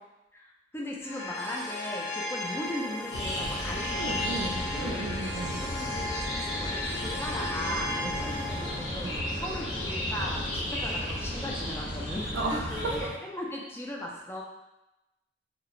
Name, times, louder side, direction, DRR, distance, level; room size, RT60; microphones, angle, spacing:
voice 1, 0.3-5.1 5.6-14.4, left 1 dB, 15° left, -2 dB, 0.3 m, -38 dB
sound 1, 1.0-12.1, left 1 dB, 65° left, 0.9 m, -37 dB
sound 2, 3.1-13.1, left 1 dB, 90° left, 0.6 m, -34 dB
voice 2, 4.0-5.6 8.0-8.1 9.0-9.2 12.3-12.6, right 2 dB, 75° right, 0 dB, 0.3 m, -34 dB
2.3 x 2.1 x 2.9 m, 0.97 s
head